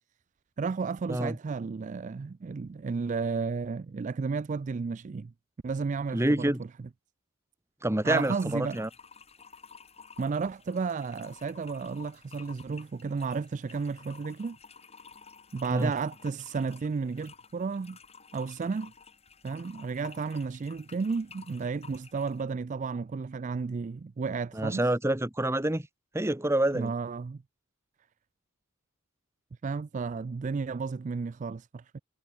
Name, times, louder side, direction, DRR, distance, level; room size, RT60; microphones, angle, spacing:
voice 1, 0.6-5.3 5.6-6.7 8.0-8.8 10.2-14.6 15.5-18.0 18.3-18.9 19.4-24.8 26.7-27.4 29.6-32.0, right 4 dB, 35° right, 0.3 m, -33 dB
voice 2, 6.1-6.6 7.8-8.9 15.7-15.9 24.5-25.9 26.1-26.9, right 1 dB, 10° right, 1.0 m, -27 dB
sound 1, 8.0-22.5, left 5 dB, 30° left, 7.9 m, -52 dB
head